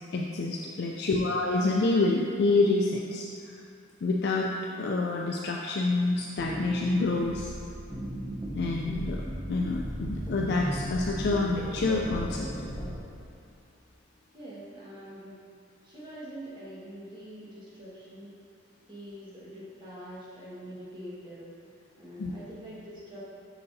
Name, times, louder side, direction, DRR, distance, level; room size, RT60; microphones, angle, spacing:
voice 1, 0.1-3.2 4.0-4.5 4.8-7.5 8.6-9.2 9.5-12.5 22.2-22.3, left 3 dB, 55° left, -1 dB, 0.4 m, -27 dB
voice 2, 0.9-1.2 14.3-15.4 15.8-18.4 18.9-21.6 22.0-23.2, equal, 25° right, -9 dB, 1.5 m, -44 dB
sound 1, 5.9-13.0, equal, 5° right, 0.7 m, -36 dB
7.0 x 5.7 x 2.7 m, 2.5 s
head